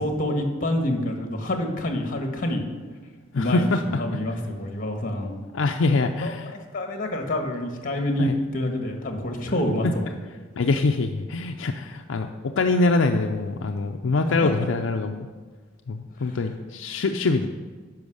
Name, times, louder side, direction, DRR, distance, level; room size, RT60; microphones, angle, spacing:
voice 1, 0.0-2.6 3.3-3.7 4.0-5.3 6.2-10.1 14.3-14.5 16.2-16.4, left 1 dB, 45° left, 3 dB, 1.5 m, -27 dB
voice 2, 3.3-3.8 5.5-6.5 8.2-8.3 9.8-9.9 10.6-15.3 15.9-17.5, left 3 dB, 75° left, 4 dB, 0.5 m, -24 dB
10.5 x 5.5 x 6.4 m, 1.4 s
head